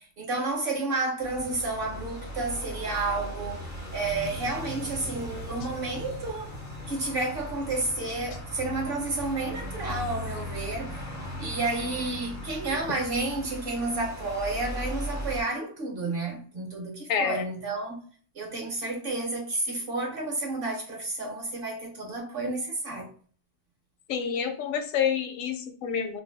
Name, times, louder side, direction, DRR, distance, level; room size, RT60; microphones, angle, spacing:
voice 1, 0.0-6.5 6.9-11.0 11.4-18.0 18.3-23.1, right 2 dB, 55° right, 0.8 m, -31 dB
sound 1, 1.2-15.4, equal, 25° left, 0.4 m, -38 dB
voice 2, 17.1-17.5 24.1-26.2, left 7 dB, 80° left, 1.0 m, -28 dB
2.6 x 2.1 x 3.4 m
omnidirectional pair, 1.4 m